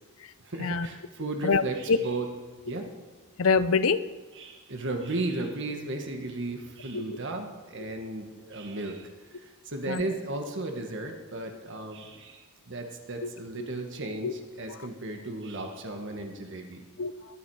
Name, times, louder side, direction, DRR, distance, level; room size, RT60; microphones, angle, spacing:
voice 1, 0.4-2.3 2.7-2.9 4.3-16.8, right 2 dB, 55° right, 4 dB, 1.5 m, -35 dB
voice 2, 3.4-4.1 6.9-7.2 9.9-10.0 13.2-13.3 13.6-13.7 14.2-14.3 14.7-14.8 17.0-17.4, left 4 dB, 65° left, 15 dB, 0.6 m, -25 dB
21.5 x 11.0 x 4.8 m, 1.3 s
head